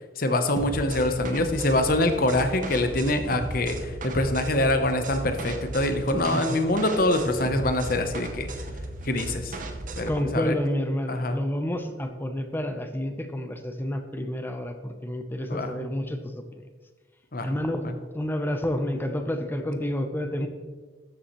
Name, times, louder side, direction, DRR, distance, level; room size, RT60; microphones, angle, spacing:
voice 1, 0.2-8.5 9.0-9.6 10.0-10.5 11.1-11.4 15.5-15.7 17.3-17.5 17.8-17.9, left 1 dB, 50° left, 7 dB, 0.9 m, -25 dB
sound 1, 0.6-10.2, right 2 dB, 45° right, 0.8 m, -36 dB
voice 2, 6.1-6.6 10.1-16.6 17.4-17.9 18.1-20.5, left 1 dB, 10° left, 6 dB, 0.7 m, -29 dB
13.0 x 7.1 x 3.1 m, 1.4 s
head